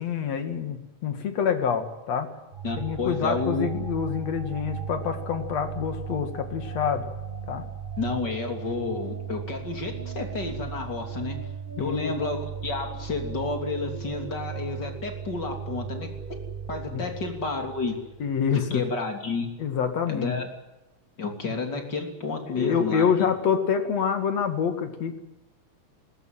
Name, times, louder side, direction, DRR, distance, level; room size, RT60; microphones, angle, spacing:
voice 1, 0.0-2.3 2.7-7.1 7.5-7.7 11.8-12.1 16.9-17.0 18.2-18.8 19.6-20.3 22.5-25.2, left 7 dB, 60° left, 7 dB, 3.3 m, -26 dB
sound 1, 2.5-18.9, right 7 dB, 75° right, 0.4 m, -37 dB
voice 2, 2.6-3.7 8.0-11.4 11.8-16.1 16.7-18.0 18.7-19.5 20.1-20.5 21.2-23.0, left 3 dB, 35° left, 4 dB, 3.6 m, -30 dB
20.5 x 20.0 x 9.2 m, 0.95 s
omnidirectional pair, 3.5 m